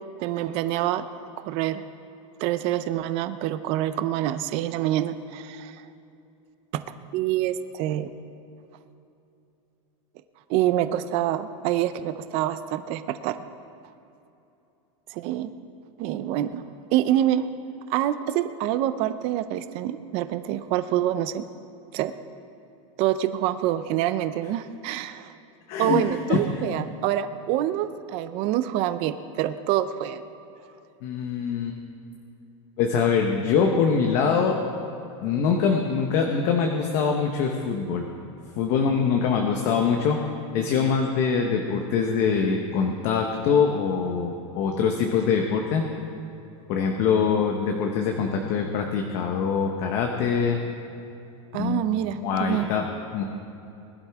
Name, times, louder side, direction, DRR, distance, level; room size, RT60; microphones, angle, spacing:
voice 1, 0.2-1.0 1.4-1.8 2.4-5.8 6.7-6.8 7.1-8.1 10.5-13.4 15.1-15.5 16.0-16.6 16.9-17.5 17.9-21.5 21.9-22.1 23.0-25.3 25.8-30.2 51.5-52.7, right 12 dB, 35° right, 11 dB, 0.5 m, -26 dB
voice 2, 25.7-26.0 26.3-26.4 26.7-26.9 31.0-31.8 32.8-34.6 35.2-38.1 38.6-40.2 40.5-45.8 46.7-50.6 51.6-51.8 52.2-52.9 53.1-53.2, left 6 dB, 40° left, 3 dB, 1.0 m, -23 dB
20.5 x 11.5 x 3.5 m, 2.8 s
supercardioid pair, 165°, 17 cm